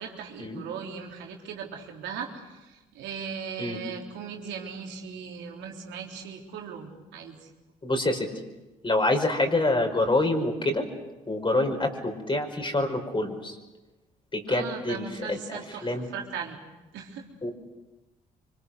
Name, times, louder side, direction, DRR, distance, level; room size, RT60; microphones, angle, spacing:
voice 1, 0.0-7.5 14.5-16.6 16.9-17.3, right 6 dB, 75° right, 1 dB, 3.8 m, -38 dB
voice 2, 7.8-8.3 8.8-10.9 11.3-13.6 14.3-15.0 15.3-16.1 17.4-17.5, left 2 dB, 25° left, 3 dB, 5.3 m, -26 dB
26.5 x 25.0 x 6.6 m, 1.1 s
hypercardioid pair, 50°, 19 cm